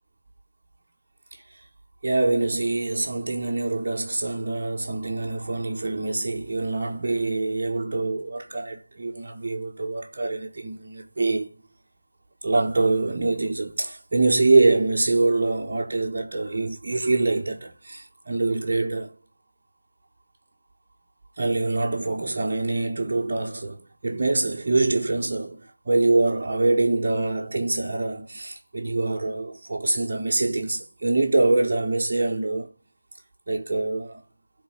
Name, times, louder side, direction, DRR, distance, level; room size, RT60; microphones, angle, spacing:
voice 1, 2.0-11.6 12.4-19.1 21.4-32.7 33.5-34.2, right 2 dB, 25° right, 1.1 m, -24 dB
11.0 x 3.9 x 6.9 m
figure-of-eight pair, 170°, 0 cm